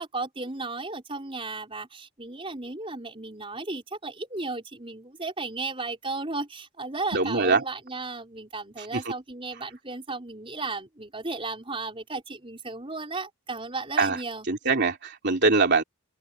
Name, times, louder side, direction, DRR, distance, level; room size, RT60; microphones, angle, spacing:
voice 1, 0.0-14.5, right 3 dB, 25° right, 4.7 m, -35 dB
voice 2, 7.1-7.6 8.8-9.0 14.0-14.2 14.5-15.8, right 3 dB, 50° right, 3.3 m, -23 dB
head